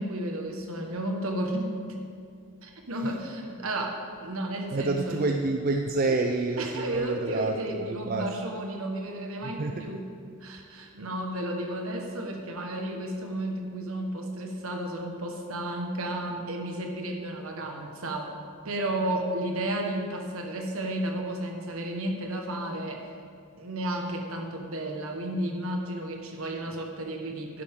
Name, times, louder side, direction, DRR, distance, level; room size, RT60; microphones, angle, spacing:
voice 1, 0.0-2.0 2.6-5.2 6.6-10.1 10.4-18.4 18.6-23.1 23.6-27.6, right 1 dB, 70° right, 2 dB, 1.4 m, -33 dB
voice 2, 4.7-8.3 9.4-9.8, right 3 dB, 40° right, 3 dB, 0.5 m, -28 dB
12.0 x 10.5 x 3.7 m, 2.4 s
head